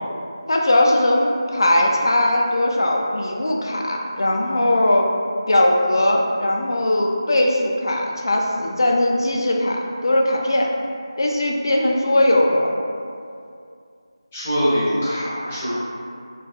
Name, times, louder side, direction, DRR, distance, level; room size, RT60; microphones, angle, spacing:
voice 1, 0.5-5.1 5.5-10.7 11.2-12.8, left 1 dB, 55° left, 0 dB, 0.3 m, -19 dB
voice 2, 14.3-15.8, equal, 20° left, -13 dB, 0.6 m, -22 dB
2.6 x 2.2 x 2.3 m, 2.4 s
figure-of-eight pair, 165°, 3 cm